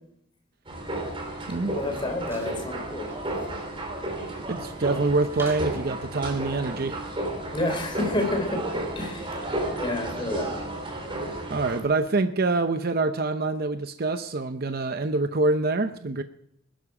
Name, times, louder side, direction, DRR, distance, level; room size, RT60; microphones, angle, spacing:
sound 1, 0.7-11.8, right 1 dB, 30° right, 3.6 m, -33 dB
voice 1, 1.6-3.1 7.5-8.6 9.0-9.5 9.8-10.5, left 1 dB, 25° left, 5 dB, 3.5 m, -29 dB
sound 2, 2.2-2.6 3.1-3.2 5.3-5.8, right 2 dB, 15° right, 2.9 m, -40 dB
voice 2, 4.5-7.0 11.5-16.2, right 3 dB, 55° right, 8 dB, 0.7 m, -25 dB
20.0 x 11.5 x 4.9 m, 0.72 s
head